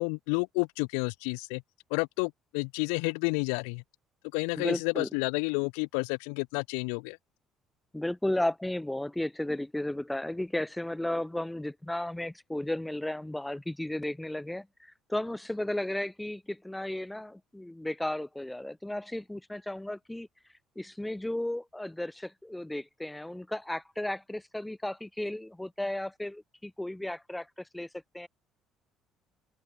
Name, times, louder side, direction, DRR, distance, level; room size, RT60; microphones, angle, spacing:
voice 1, 0.0-1.6 1.9-3.8 4.3-7.2, left 40 dB or more, 70° left, 0.6 m, -30 dB
voice 2, 4.5-5.1 7.9-20.3 20.7-27.9 28.1-28.3, left 1 dB, 10° left, 5.2 m, -34 dB
open air
figure-of-eight pair, 50°, 0 cm